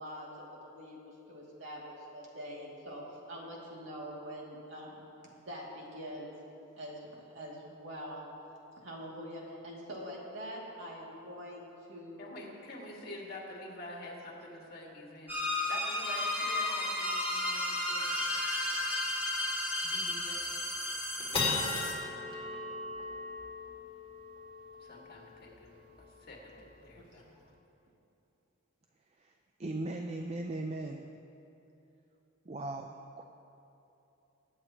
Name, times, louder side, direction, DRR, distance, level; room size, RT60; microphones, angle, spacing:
voice 1, 0.0-5.0 5.4-6.3 6.8-8.3 8.8-12.3 26.9-27.1, equal, 65° right, -4 dB, 2.4 m, -44 dB
voice 2, 12.2-18.1 19.8-20.4 24.8-27.3, left 2 dB, 50° left, -2 dB, 1.9 m, -47 dB
sound 1, 15.3-21.9, left 1 dB, 10° right, 1.8 m, -33 dB
sound 2, 17.8-17.9 18.2-18.3 18.7-18.9 19.4-19.5 20.1-20.4 20.9-27.4, left 4 dB, 25° left, 2.5 m, -39 dB
voice 3, 29.6-31.1 32.5-33.2, right 2 dB, 30° right, 4 dB, 0.4 m, -38 dB
22.5 x 8.5 x 2.9 m, 3.0 s
head